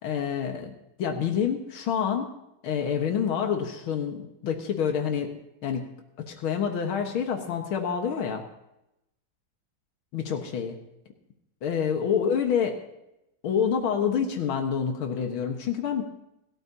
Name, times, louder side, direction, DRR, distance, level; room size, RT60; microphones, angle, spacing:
voice 1, 0.0-2.3 2.6-5.3 5.6-5.9 6.2-8.4 10.1-10.8 11.6-12.8 13.4-16.0, left 7 dB, 90° left, 3 dB, 2.2 m, -27 dB
26.0 x 13.5 x 2.8 m, 0.86 s
omnidirectional pair, 2.2 m